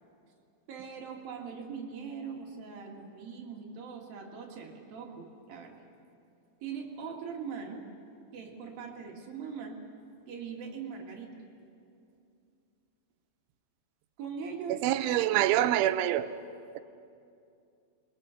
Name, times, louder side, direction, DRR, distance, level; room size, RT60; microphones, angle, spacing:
voice 1, 0.7-5.8 6.6-7.9 8.3-9.8 10.3-11.4 14.2-14.9, right 6 dB, 60° right, 0 dB, 3.2 m, -41 dB
voice 2, 14.7-16.3 16.7-16.8, right 13 dB, 85° right, 11 dB, 3.2 m, -26 dB
28.5 x 22.5 x 5.8 m, 2.6 s
omnidirectional pair, 5.4 m